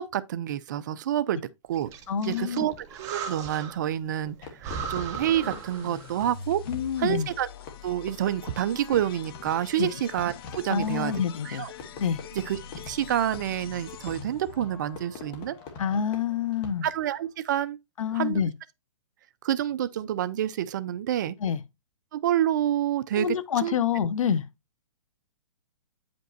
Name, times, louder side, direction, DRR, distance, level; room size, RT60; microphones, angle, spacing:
voice 1, 0.0-1.4 1.7-1.9 2.2-6.6 7.0-7.5 7.8-11.1 11.4-11.7 12.5-12.6 12.9-15.6 16.8-17.8 18.1-18.4 19.4-21.4 22.1-23.4 23.6-23.8, right 11 dB, 35° right, 0.4 m, -28 dB
Breathing, 1.7-3.9 4.2-4.3 4.6-6.3, right 6 dB, 20° right, 0.9 m, -37 dB
voice 2, 2.1-2.7 6.7-7.3 9.8-9.9 10.7-11.7 12.0-12.2 15.8-16.9 18.0-18.5 21.4-21.6 23.2-24.4, left 8 dB, 80° left, 0.8 m, -27 dB
Fireworks, 4.4-17.1, left 4 dB, 25° left, 1.3 m, -45 dB
sound 1, 5.4-14.6, left 7 dB, 45° left, 0.7 m, -44 dB
8.9 x 5.2 x 2.6 m
hypercardioid pair, 160°, 17 cm